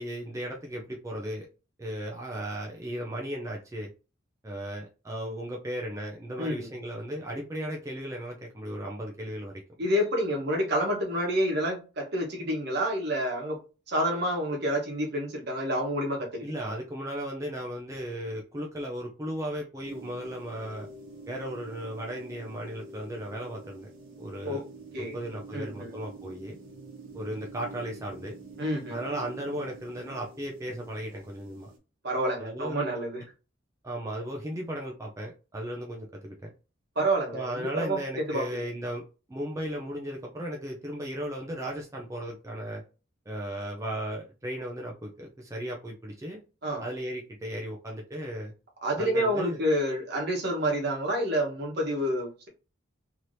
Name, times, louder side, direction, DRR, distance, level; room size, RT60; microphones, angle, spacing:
voice 1, 0.0-1.5 1.8-3.9 4.4-9.6 16.4-20.9 21.3-23.9 24.2-24.6 25.0-26.6 27.1-28.4 28.9-31.7 32.4-32.8 33.8-36.5 37.3-42.8 43.3-46.4 46.8-48.5 49.0-49.6, equal, 15° right, 0.4 m, -36 dB
voice 2, 6.4-6.7 9.8-13.6 13.9-16.5 24.4-24.6 24.9-25.2 25.5-26.0 28.6-29.0 32.0-33.2 37.0-38.4 46.6-46.8 48.8-52.5, equal, 50° right, 1.0 m, -28 dB
sound 1, 19.8-31.8, right 3 dB, 85° right, 1.0 m, -47 dB
3.2 x 2.9 x 2.6 m
head